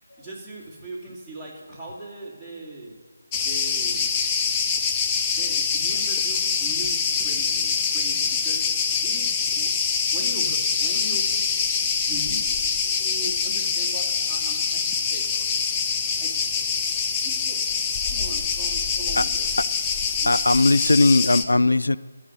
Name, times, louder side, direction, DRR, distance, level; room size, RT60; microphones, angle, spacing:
voice 1, 0.2-3.0 3.3-4.1 5.3-9.7 10.1-11.7 12.0-12.6 12.8-14.8 15.1-15.2 16.2-16.3 17.2-17.6 18.0-19.5 20.2-20.3, right 2 dB, ahead, -10 dB, 2.9 m, -39 dB
Cricket, 3.3-21.4, left 6 dB, 15° left, 0.6 m, -24 dB
voice 2, 20.3-22.0, left 2 dB, 85° left, 16 dB, 0.4 m, -19 dB
13.5 x 7.1 x 8.1 m, 1.5 s
figure-of-eight pair, 160°, 0 cm